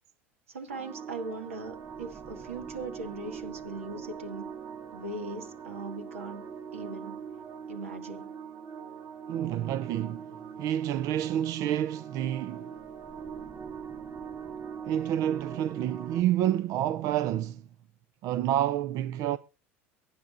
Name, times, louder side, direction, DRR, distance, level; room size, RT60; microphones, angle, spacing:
voice 1, 0.5-4.4 4.9-6.4 6.7-7.2 7.7-8.3, right 2 dB, 80° right, 1.9 m, -39 dB
sound 1, 0.7-16.2, right 7 dB, 35° right, 1.8 m, -42 dB
voice 2, 9.3-10.3 10.6-12.7 14.9-17.7 18.2-19.4, right 12 dB, 50° right, 0.5 m, -29 dB
23.0 x 9.9 x 2.5 m
hypercardioid pair, 80°, 7 cm